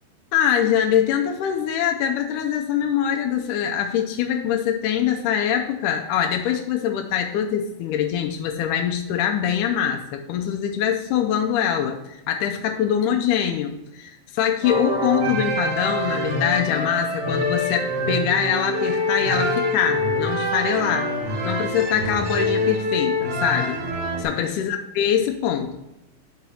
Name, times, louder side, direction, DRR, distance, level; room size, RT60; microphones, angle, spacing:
voice 1, 0.3-21.1 21.4-23.8 24.2-25.8, left 9 dB, 80° left, 3 dB, 2.1 m, -23 dB
sound 1, 14.6-24.2, left 1 dB, 70° right, 3.4 m, -25 dB
7.0 x 3.9 x 6.2 m, 0.94 s
omnidirectional pair, 3.8 m